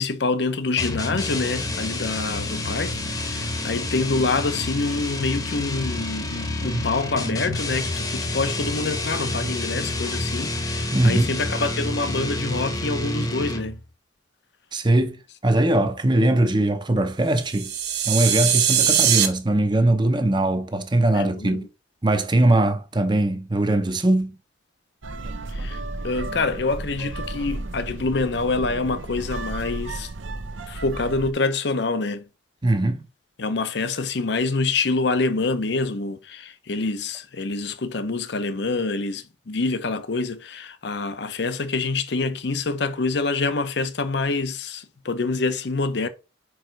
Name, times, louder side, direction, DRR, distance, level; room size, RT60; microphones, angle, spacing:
voice 1, 0.0-13.8 21.1-21.6 25.5-30.1 30.7-32.3 33.4-46.1, left 3 dB, 60° left, 0.7 m, -26 dB
sound 1, 0.8-13.9, left 2 dB, 20° left, 0.9 m, -29 dB
voice 2, 10.9-11.3 14.7-17.7 18.1-21.7 22.0-24.3 32.6-33.0, right 1 dB, 25° right, 0.6 m, -21 dB
sound 2, 17.4-19.3, right 9 dB, 55° right, 1.1 m, -21 dB
sound 3, 25.0-31.3, right 2 dB, 90° right, 0.8 m, -33 dB
5.0 x 4.7 x 4.5 m
head